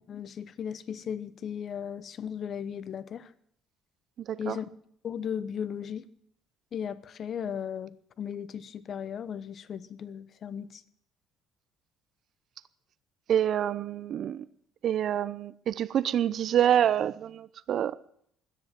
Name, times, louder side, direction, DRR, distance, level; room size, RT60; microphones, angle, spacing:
voice 1, 0.1-3.3 4.4-4.7 5.0-6.0 6.7-10.8, left 8 dB, 35° left, 0.9 m, -36 dB
voice 2, 4.3-4.6 13.3-14.5 14.8-18.1, right 10 dB, 45° right, 0.7 m, -27 dB
17.0 x 10.5 x 7.6 m
cardioid pair, 155°, 0 cm